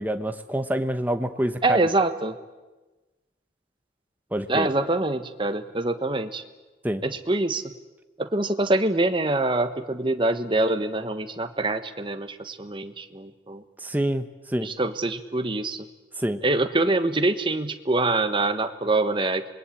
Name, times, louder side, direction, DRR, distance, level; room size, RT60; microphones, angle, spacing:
voice 1, 0.0-1.8 4.3-4.7 6.8-7.0 13.8-14.3 14.5-14.7 16.2-16.4, right 1 dB, 10° right, 8 dB, 1.0 m, -26 dB
voice 2, 1.6-2.4 4.5-6.4 7.0-7.7 8.2-13.6 14.6-15.9 16.4-19.5, right 2 dB, 30° right, 8 dB, 1.3 m, -25 dB
26.0 x 21.0 x 8.6 m, 1.2 s
head